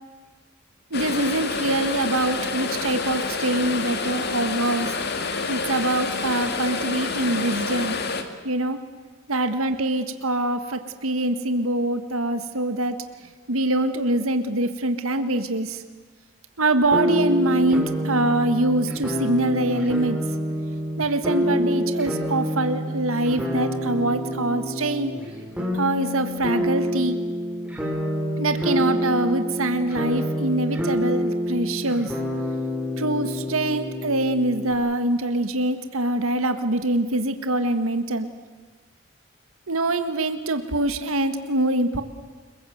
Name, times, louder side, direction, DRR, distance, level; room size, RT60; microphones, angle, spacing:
sound 1, 0.9-8.2, left 4 dB, 50° left, 2.3 m, -28 dB
voice 1, 0.9-4.9 5.5-8.0 8.4-8.8 9.3-13.0 13.5-15.8 16.6-20.2 21.0-25.1 25.7-27.2 28.4-32.1 33.0-38.3 39.7-42.0, right 2 dB, 85° right, 9 dB, 1.7 m, -24 dB
sound 2, 16.9-34.7, equal, 5° right, 5.1 m, -27 dB
29.5 x 21.5 x 8.0 m, 1.4 s
head